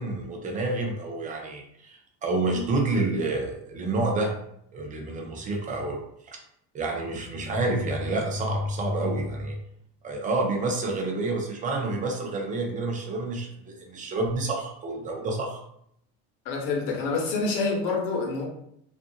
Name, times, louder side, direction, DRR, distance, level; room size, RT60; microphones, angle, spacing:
voice 1, 0.0-4.3 4.7-6.0 6.3-6.4 6.7-9.6 10.0-15.6, right 2 dB, 25° right, 1 dB, 0.6 m, -28 dB
voice 2, 16.4-18.4, left 4 dB, 80° left, 0 dB, 0.9 m, -27 dB
2.6 x 2.5 x 2.6 m, 0.72 s
cardioid pair, 135°, 30 cm